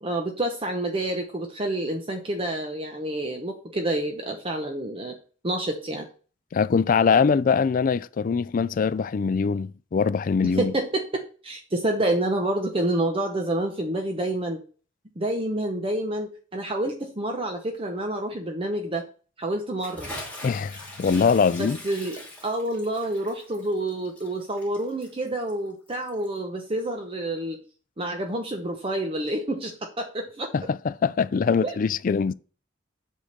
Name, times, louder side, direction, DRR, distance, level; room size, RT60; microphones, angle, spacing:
voice 1, 0.0-5.2 5.4-6.1 10.6-14.6 15.2-19.1 19.4-20.1 21.6-27.6 28.0-30.5 31.6-31.7, right 1 dB, 30° right, 0.8 m, -28 dB
voice 2, 6.5-10.7 20.4-21.8 30.5-32.3, left 5 dB, 45° left, 0.3 m, -22 dB
Bathtub (filling or washing) / Splash splatter, 19.8-26.4, left 1 dB, 5° left, 2.7 m, -42 dB
8.0 x 3.7 x 6.5 m
head